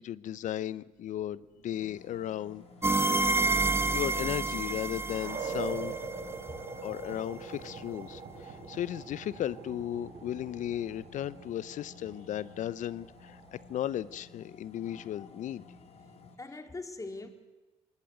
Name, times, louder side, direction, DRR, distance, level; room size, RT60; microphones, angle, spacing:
voice 1, 0.0-2.6 3.9-5.9 6.8-15.6, left 11 dB, 60° left, 0.8 m, -35 dB
sound 1, 1.7-16.4, left 4 dB, 45° left, 2.9 m, -55 dB
sound 2, 2.6-14.0, right 4 dB, 65° right, 4.7 m, -43 dB
sound 3, 2.8-6.6, right 3 dB, 15° right, 1.1 m, -29 dB
voice 2, 6.3-6.6 8.4-8.5 16.4-17.3, left 3 dB, 25° left, 3.6 m, -43 dB
24.5 x 20.0 x 7.9 m
hypercardioid pair, 60°, 14 cm